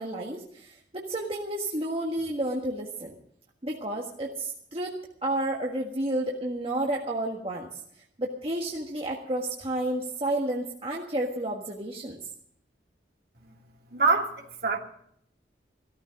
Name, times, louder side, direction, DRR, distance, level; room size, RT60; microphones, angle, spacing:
voice 1, 0.0-3.1 3.6-7.8 8.2-12.2, right 1 dB, 35° right, -1 dB, 1.6 m, -31 dB
voice 2, 13.9-14.8, right 4 dB, 60° right, 0 dB, 2.5 m, -25 dB
15.5 x 13.5 x 5.2 m, 0.69 s
head